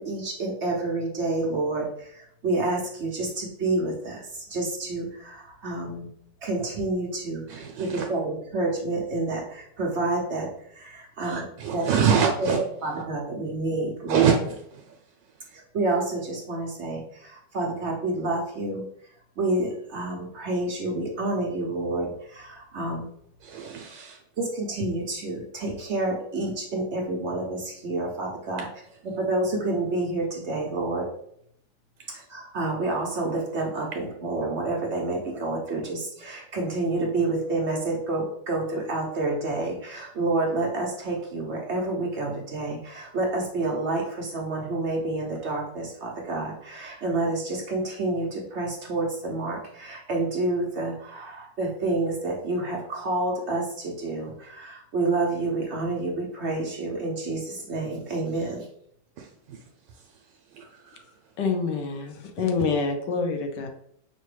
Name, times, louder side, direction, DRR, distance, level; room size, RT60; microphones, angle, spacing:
voice 1, 0.0-6.1 6.4-10.5 10.7-11.4 11.7-11.9 12.4-14.4 15.5-18.8 19.4-23.1 24.4-28.7 29.0-31.1 32.1-58.7, right 2 dB, 65° right, -1 dB, 0.7 m, -29 dB
voice 2, 7.5-8.1 11.3-12.6 14.1-14.4 23.4-24.2 60.6-61.0, right 7 dB, 80° right, 2 dB, 1.2 m, -24 dB
voice 3, 61.4-63.7, left 4 dB, 75° left, 5 dB, 1.3 m, -27 dB
5.5 x 2.2 x 3.2 m, 0.68 s
omnidirectional pair, 2.0 m